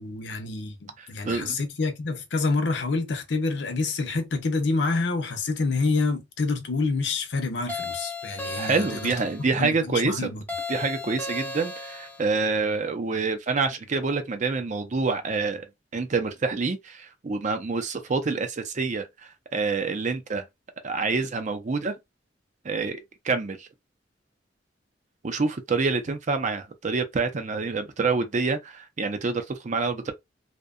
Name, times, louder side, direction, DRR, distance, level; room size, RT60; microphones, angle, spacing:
voice 1, 0.0-9.1 9.6-10.4, left 3 dB, 70° left, 0.6 m, -27 dB
voice 2, 1.0-1.6 8.6-10.3 10.7-15.7 15.9-20.4 20.8-21.9 22.6-23.7 25.2-30.1, right 4 dB, 40° right, 0.5 m, -27 dB
sound 1, 7.7-9.4 10.5-12.3, left 3 dB, 10° left, 0.5 m, -35 dB
2.7 x 2.1 x 2.4 m
head